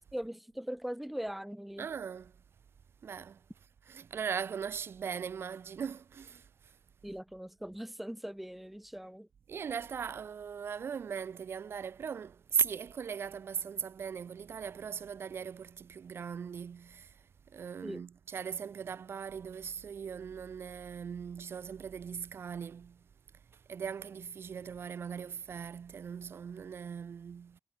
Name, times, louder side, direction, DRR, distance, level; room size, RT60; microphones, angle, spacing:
voice 1, 0.1-1.9 7.0-9.3 17.8-18.0, equal, 5° right, 1.4 m, -40 dB
voice 2, 1.8-2.3 3.0-3.4 3.9-6.4 9.5-17.1 17.5-23.0 23.7-27.6, right 7 dB, 90° right, 0.7 m, -39 dB
wide cardioid pair, 180°, 4 cm